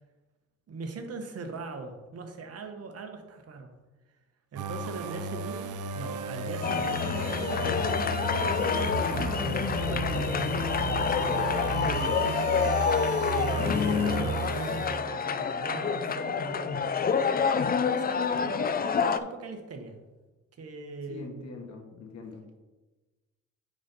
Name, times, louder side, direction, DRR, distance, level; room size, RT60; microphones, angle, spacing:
voice 1, 0.7-3.7 4.5-10.1 11.0-12.7 13.3-17.0 17.8-20.0 20.6-21.4, right 3 dB, 55° right, 5 dB, 1.3 m, -40 dB
sound 1, 4.6-15.4, right 5 dB, 80° right, 0.6 m, -34 dB
sound 2, 6.6-19.2, left 6 dB, 30° left, 0.4 m, -27 dB
voice 2, 14.0-14.4 21.1-22.4, left 4 dB, 65° left, 2 dB, 1.7 m, -43 dB
9.2 x 4.2 x 4.1 m, 1.2 s
cardioid pair, 90°, 30 cm